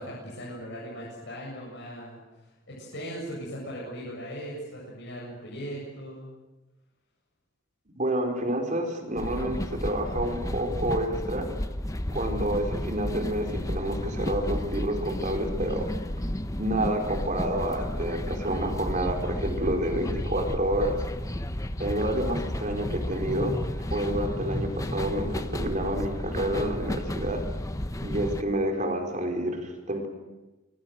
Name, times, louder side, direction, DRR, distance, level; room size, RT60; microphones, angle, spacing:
voice 1, 0.0-2.2 2.7-6.3, equal, 65° left, -4 dB, 7.8 m, -38 dB
voice 2, 8.0-11.5 12.1-15.9 16.6-21.0 21.8-23.6 23.9-27.4 28.0-30.1, right 1 dB, 40° right, 4 dB, 4.8 m, -29 dB
sound 1, 9.2-28.4, left 1 dB, 15° left, 1.1 m, -32 dB
25.5 x 23.0 x 8.0 m, 1.1 s
head